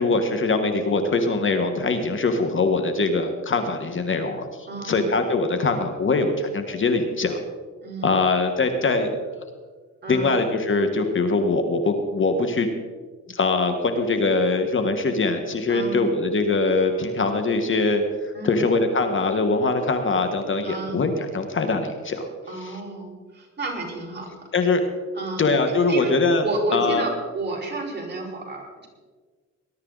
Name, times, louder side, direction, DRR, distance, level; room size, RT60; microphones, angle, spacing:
voice 1, 0.0-7.4 8.0-9.1 10.1-12.7 13.3-22.3 22.6-22.7 24.5-24.9 25.4-26.4 26.7-27.0, left 3 dB, 40° left, 6 dB, 1.6 m, -22 dB
voice 2, 4.7-5.1 7.8-8.3 10.0-10.3 15.7-16.1 18.3-18.7 20.6-21.0 22.5-24.5 25.1-25.4 25.9-26.1 26.4-28.9, right 2 dB, 35° right, -2 dB, 5.1 m, -31 dB
20.5 x 12.0 x 4.0 m, 1.5 s
cardioid pair, 90°, 30 cm